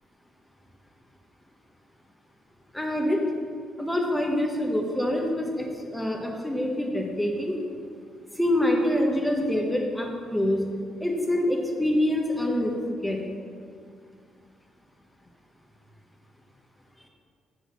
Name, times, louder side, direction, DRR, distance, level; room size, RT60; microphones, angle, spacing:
voice 1, 2.7-3.2 3.8-7.6 8.3-10.6 11.0-13.2, left 1 dB, 5° left, 0 dB, 1.1 m, -26 dB
7.8 x 3.9 x 6.2 m, 2.1 s
cardioid pair, 90°, 0 cm